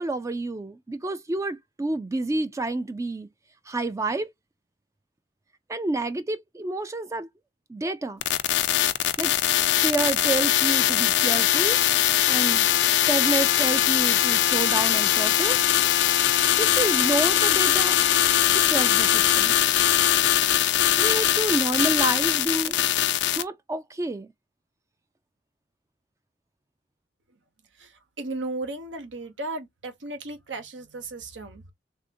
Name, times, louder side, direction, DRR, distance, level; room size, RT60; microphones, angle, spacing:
voice 1, 0.0-3.3 3.7-4.3 5.7-7.3 7.7-8.2 9.2-9.3 9.8-11.8 12.3-12.7 13.1-15.6 16.6-18.0 18.5-19.6 21.0-22.8 23.4-24.3, right 2 dB, 15° right, 0.3 m, -28 dB
sound 1, 8.2-23.4, left 12 dB, 70° left, 0.4 m, -21 dB
voice 2, 27.7-31.7, right 2 dB, 85° right, 0.9 m, -35 dB
3.4 x 2.5 x 2.6 m
head